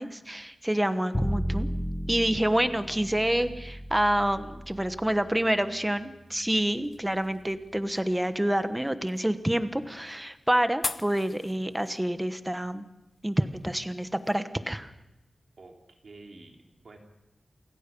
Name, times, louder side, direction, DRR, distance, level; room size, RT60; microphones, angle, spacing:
voice 1, 0.0-1.7 2.1-12.9 13.2-14.9, right 1 dB, 10° right, 10 dB, 1.1 m, -27 dB
Bowed string instrument, 1.1-7.3, equal, 10° left, 1.4 m, -35 dB
voice 2, 3.4-3.8 11.6-11.8 15.6-17.0, right 3 dB, 60° right, 1 dB, 3.5 m, -51 dB
sound 1, 5.9-14.4, left 4 dB, 55° left, 0.7 m, -44 dB
28.5 x 17.0 x 5.3 m, 0.94 s
wide cardioid pair, 115°, 0 cm